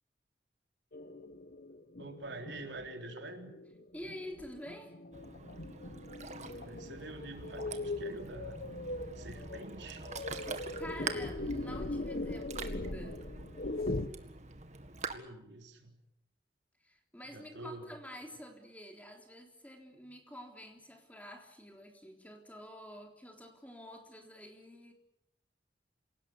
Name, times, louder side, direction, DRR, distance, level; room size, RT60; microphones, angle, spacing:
sound 1, 0.9-14.1, left 2 dB, 55° left, 1.3 m, -41 dB
voice 1, 2.0-3.5 6.3-8.7 9.2-10.1 15.1-16.0 17.3-18.0, right 2 dB, 85° right, 4 dB, 3.6 m, -46 dB
voice 2, 3.9-5.0 10.8-13.2 16.8-24.9, equal, 10° left, 3 dB, 3.7 m, -48 dB
Ocean, 5.1-15.2, right 4 dB, 40° right, 2.0 m, -45 dB
27.0 x 18.0 x 8.5 m, 0.78 s
head